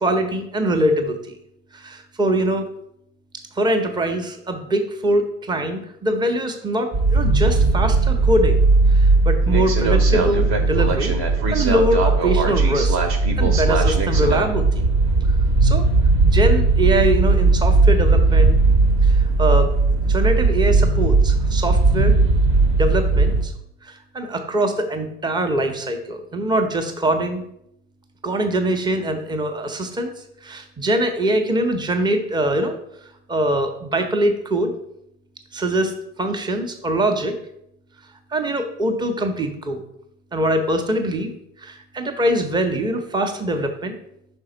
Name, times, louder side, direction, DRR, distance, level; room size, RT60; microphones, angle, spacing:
voice 1, 0.0-1.2 1.7-2.7 3.6-11.2 11.5-13.0 13.4-14.7 15.6-15.9 16.2-18.6 19.0-19.7 20.0-22.1 22.8-23.5 23.8-27.4 28.2-30.1 30.4-32.7 33.3-34.7 35.5-35.9 36.2-37.3 38.3-39.8 40.3-41.3 41.6-43.9, right 1 dB, 10° right, 6 dB, 0.7 m, -23 dB
sound 1, 6.9-23.4, right 3 dB, 40° right, 1.1 m, -17 dB
5.5 x 4.4 x 3.9 m, 0.76 s
hypercardioid pair, 80°, 41 cm